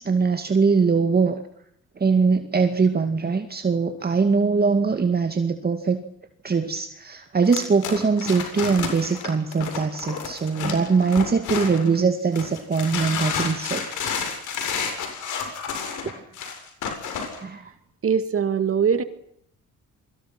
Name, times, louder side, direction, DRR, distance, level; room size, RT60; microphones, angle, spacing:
voice 1, 0.0-1.4 2.0-6.0 6.4-13.9 15.5-15.6 16.0-16.1 17.4-17.7, right 5 dB, 30° right, 7 dB, 2.2 m, -22 dB
sound 1, 7.5-12.0 12.3-17.4, left 6 dB, 80° left, 7.8 m, -30 dB
voice 2, 18.0-19.0, right 7 dB, 45° right, 10 dB, 2.4 m, -21 dB
28.5 x 24.0 x 6.1 m, 0.70 s
cardioid pair, 90°, 30 cm